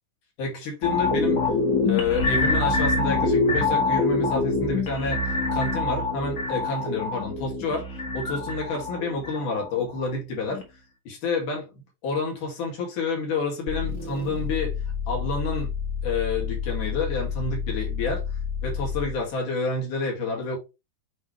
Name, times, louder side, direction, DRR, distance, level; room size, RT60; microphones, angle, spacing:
voice 1, 0.4-1.4 1.9-5.2 5.5-7.9 8.1-10.6 11.1-11.7 12.0-14.7 15.1-15.7 16.0-18.2 18.6-20.6, left 3 dB, 80° left, 3.8 m, -29 dB
sound 1, 0.8-10.1 10.5-10.6, left 3 dB, 35° left, 1.3 m, -25 dB
sound 2, 13.7-19.3, left 6 dB, 30° right, 1.2 m, -30 dB
9.1 x 3.3 x 3.2 m
omnidirectional pair, 3.6 m